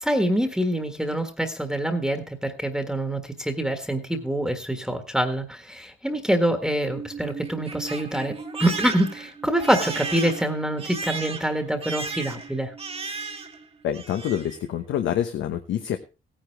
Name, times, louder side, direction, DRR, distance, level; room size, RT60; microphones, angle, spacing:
voice 1, 0.0-8.3 8.6-12.7, right 1 dB, 5° right, 5 dB, 1.5 m, -25 dB
Crying sobbing, 6.6-13.6 13.9-14.6, right 4 dB, 30° right, 1.4 m, -35 dB
voice 2, 13.8-16.0, left 10 dB, 75° left, 7 dB, 1.0 m, -26 dB
16.5 x 10.0 x 3.4 m, 0.31 s
cardioid pair, 90°, 20 cm